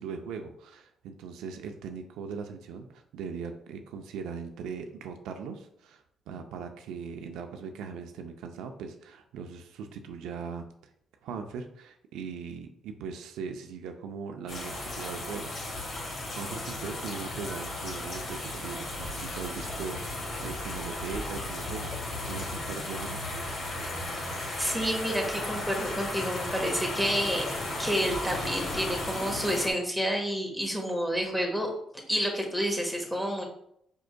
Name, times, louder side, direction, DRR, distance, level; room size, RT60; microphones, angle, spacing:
voice 1, 0.0-10.6 11.2-15.9 16.4-23.3, right 6 dB, 90° right, 5 dB, 0.5 m, -40 dB
sound 1, 14.5-29.7, left 2 dB, 60° left, 1.6 m, -35 dB
voice 2, 24.6-27.4 27.8-31.7 32.1-33.4, equal, 5° left, 1 dB, 1.3 m, -29 dB
5.1 x 4.6 x 2.2 m, 0.72 s
cardioid pair, 90°, 0 cm